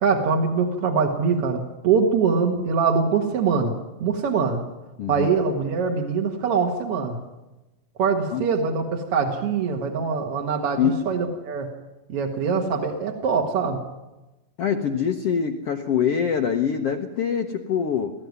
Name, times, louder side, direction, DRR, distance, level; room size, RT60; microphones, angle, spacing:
voice 1, 0.0-3.7 4.0-4.6 5.1-7.2 8.0-11.7 12.1-13.8, right 5 dB, 50° right, 0 dB, 2.0 m, -23 dB
voice 2, 5.0-5.3 8.3-8.4 10.8-11.1 14.6-18.1, left 7 dB, 85° left, 3 dB, 1.3 m, -24 dB
20.5 x 14.0 x 9.5 m, 1.1 s
omnidirectional pair, 4.3 m